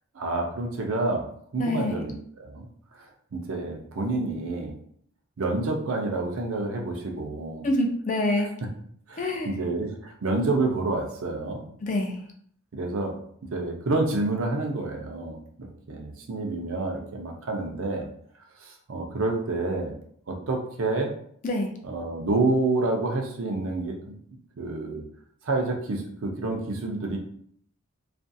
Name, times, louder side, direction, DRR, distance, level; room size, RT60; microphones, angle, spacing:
voice 1, 0.1-1.2 1.5-2.7 3.0-3.1 3.3-4.7 5.4-7.6 9.1-11.7 12.7-13.1 13.5-18.1 18.6-19.9 20.3-21.1 21.8-24.1 24.6-25.0 25.4-27.2, right 2 dB, 65° right, 2 dB, 0.5 m, -28 dB
voice 2, 1.6-2.1 7.6-8.5 9.2-9.6 11.8-12.2 21.4-21.7, left 1 dB, 35° left, 3 dB, 0.3 m, -26 dB
2.5 x 2.3 x 2.5 m, 0.63 s
head